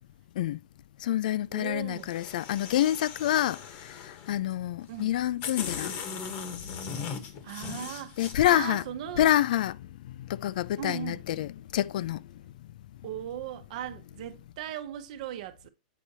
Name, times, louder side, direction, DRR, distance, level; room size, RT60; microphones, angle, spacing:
voice 1, 1.0-5.9 8.2-8.8 9.2-12.4, left 12 dB, 70° left, 0.3 m, -27 dB
voice 2, 1.5-2.1 4.9-5.2 7.4-8.2 8.4-9.3 10.8-11.2 13.0-15.7, right 11 dB, 60° right, 0.9 m, -38 dB
sound 1, 2.0-4.3 5.0-5.1 5.4-8.3, left 6 dB, 35° left, 1.1 m, -38 dB
8.2 x 4.7 x 2.8 m
supercardioid pair, 150°, 5 cm